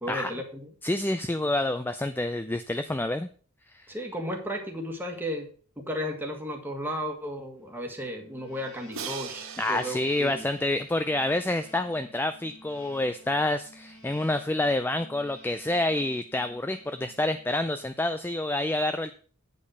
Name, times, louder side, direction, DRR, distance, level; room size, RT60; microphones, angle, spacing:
voice 1, 0.0-0.7 3.9-5.5 5.8-10.4, equal, 10° right, 2 dB, 1.7 m, -34 dB
voice 2, 0.8-3.3 3.7-3.9 9.6-19.1, left 1 dB, 10° left, 10 dB, 0.3 m, -28 dB
sound 1, 7.9-17.8, equal, 80° left, 2.9 m, -53 dB
Crash cymbal, 8.9-11.9, right 6 dB, 65° right, 1.6 m, -42 dB
8.6 x 5.4 x 6.3 m, 0.43 s
head